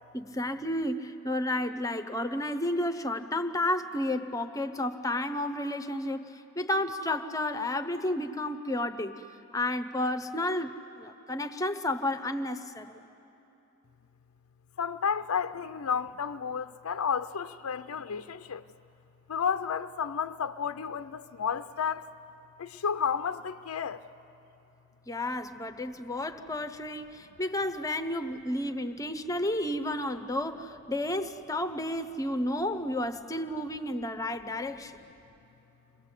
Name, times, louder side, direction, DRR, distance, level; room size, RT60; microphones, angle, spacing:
voice 1, 0.1-9.2 9.5-13.0 25.1-35.0, left 1 dB, 15° left, 0.8 m, -32 dB
voice 2, 14.8-18.6 19.3-22.1 22.6-24.0, left 7 dB, 90° left, 0.5 m, -32 dB
29.5 x 22.5 x 8.3 m
head